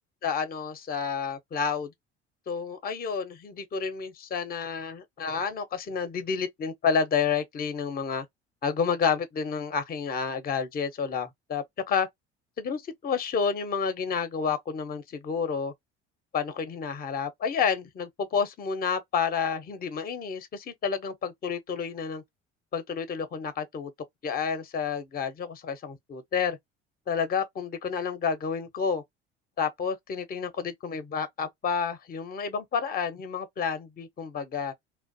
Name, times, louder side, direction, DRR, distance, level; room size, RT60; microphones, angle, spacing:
voice 1, 0.2-1.9 2.5-8.3 8.6-12.1 12.6-15.7 16.3-22.2 22.7-23.9 24.2-26.6 27.1-29.0 29.6-34.7, left 6 dB, 30° left, 0.6 m, -30 dB
2.4 x 2.0 x 2.6 m
figure-of-eight pair, 60°, 31 cm